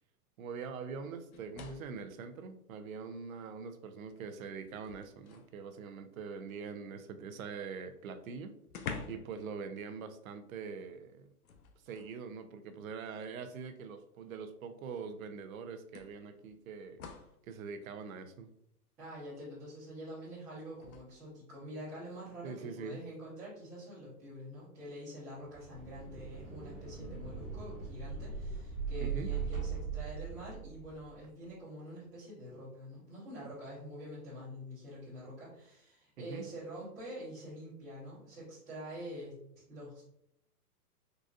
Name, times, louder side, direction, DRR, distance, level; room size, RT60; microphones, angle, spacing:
voice 1, 0.4-8.5 9.1-11.3 11.8-17.1 17.4-18.5 22.4-23.0 29.0-29.3 36.2-36.5, right 5 dB, 65° right, 8 dB, 0.5 m, -43 dB
sound 1, 1.3-2.1 3.4-3.5 4.0-5.6 7.7-7.8 8.0-8.1 8.7-9.4 9.7-9.9 11.4-12.2 13.3-13.4 15.0-15.1 15.9-17.4 20.7-21.0, left 6 dB, 65° left, 0.6 m, -47 dB
voice 2, 19.0-39.3 39.7-40.0, equal, 5° right, -15 dB, 0.7 m, -46 dB
sound 2, 25.5-31.1, right 6 dB, 25° right, 1.1 m, -39 dB
3.9 x 2.5 x 2.4 m, 0.74 s
hypercardioid pair, 175°, 46 cm